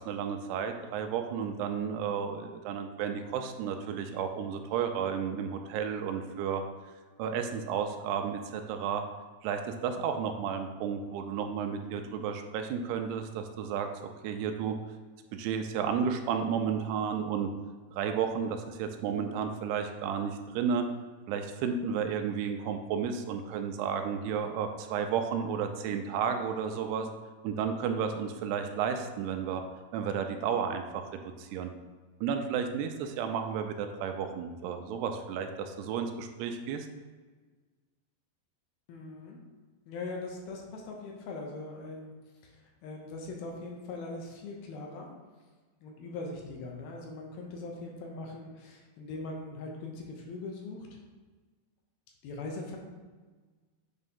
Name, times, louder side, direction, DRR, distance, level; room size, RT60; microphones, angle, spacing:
voice 1, 0.0-6.6 7.2-9.0 9.4-13.9 14.2-14.8 15.3-17.5 17.9-20.8 21.3-27.1 27.4-29.6 29.9-31.7 32.2-36.9, right 7 dB, 85° right, 6 dB, 2.6 m, -32 dB
voice 2, 38.9-39.4 39.9-42.1 42.4-42.6 42.8-45.1 45.8-51.0 52.2-52.8, left 3 dB, 75° left, 0 dB, 2.7 m, -41 dB
8.1 x 3.3 x 5.4 m, 1.4 s
omnidirectional pair, 4.7 m